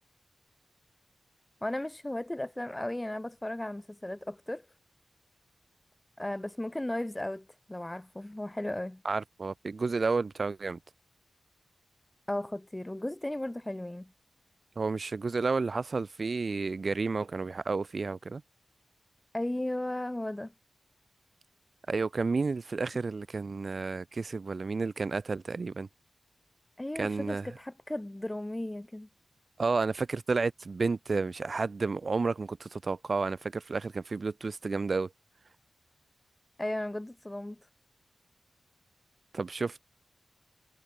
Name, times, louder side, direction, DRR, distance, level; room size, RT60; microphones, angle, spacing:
voice 1, 1.6-4.6 6.2-9.0 12.3-14.1 19.3-20.5 26.8-29.1 36.6-37.6, left 1 dB, 10° left, 1.6 m, -35 dB
voice 2, 9.0-10.8 14.8-18.4 21.9-25.9 27.0-27.4 29.6-35.1 39.3-39.8, right 4 dB, 45° right, 0.6 m, -31 dB
wide cardioid pair, 135°, 0 cm